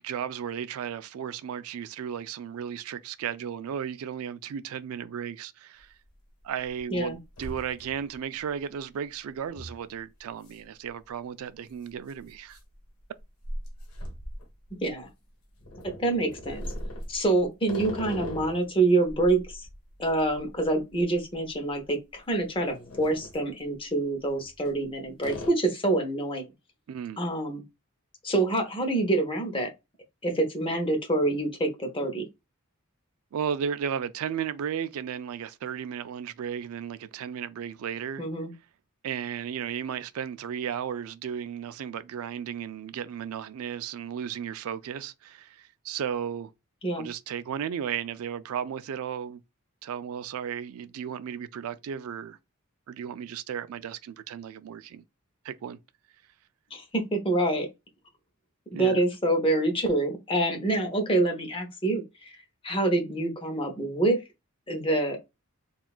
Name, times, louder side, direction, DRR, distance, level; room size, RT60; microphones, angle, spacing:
voice 1, 0.0-5.9 6.4-12.6 26.9-27.2 33.3-38.2 39.0-46.5 47.0-49.4 49.8-52.4 52.9-55.0 55.4-55.8 58.7-59.0, right 8 dB, 75° right, 0.3 m, -34 dB
sound 1, 5.8-5.9 6.4-6.8 7.1-8.1 8.5-8.6 9.6-9.8 10.4-10.6 10.9-11.0 11.9-15.0 15.6-18.7 19.1-21.4 21.7-21.9 22.4-23.4 24.3-24.8 25.2-25.5, left 1 dB, 80° left, 1.0 m, -39 dB
voice 2, 16.0-16.6 17.1-19.7 20.0-26.5 27.2-27.6 28.2-29.7 30.2-32.2 38.2-38.5 46.8-47.1 56.7-57.7 58.7-62.3 62.6-64.2 64.7-65.2, right 2 dB, 25° left, 0.7 m, -26 dB
3.7 x 2.4 x 2.3 m
head